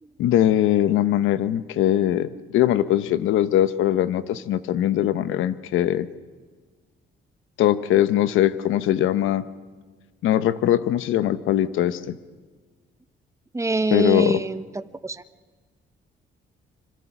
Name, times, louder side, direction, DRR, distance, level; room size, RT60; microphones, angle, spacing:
voice 1, 0.2-6.1 7.6-9.4 10.2-12.1 13.9-14.4, left 12 dB, 85° left, 14 dB, 1.0 m, -21 dB
voice 2, 13.5-15.2, right 2 dB, 15° right, 13 dB, 0.9 m, -25 dB
26.5 x 25.5 x 6.1 m, 1.4 s
cardioid pair, 90°, 20 cm